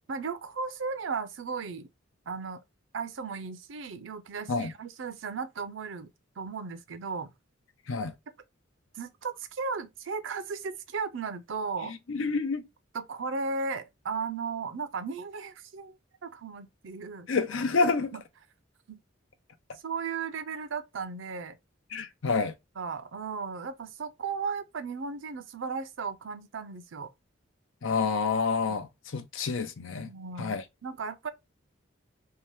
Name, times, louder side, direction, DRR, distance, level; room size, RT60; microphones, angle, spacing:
voice 1, 0.1-1.9 2.3-2.6 2.9-6.1 6.4-7.3 8.9-11.9 12.9-16.0 16.2-17.3 18.1-18.2 18.9-19.0 19.8-21.6 22.8-27.1 28.6-28.8 30.0-31.3, right 5 dB, 80° right, 0.5 m, -35 dB
voice 2, 12.1-12.7 17.3-18.1 21.9-22.5 27.8-30.1 30.4-30.6, left 4 dB, 90° left, 0.6 m, -28 dB
2.8 x 2.2 x 3.1 m
head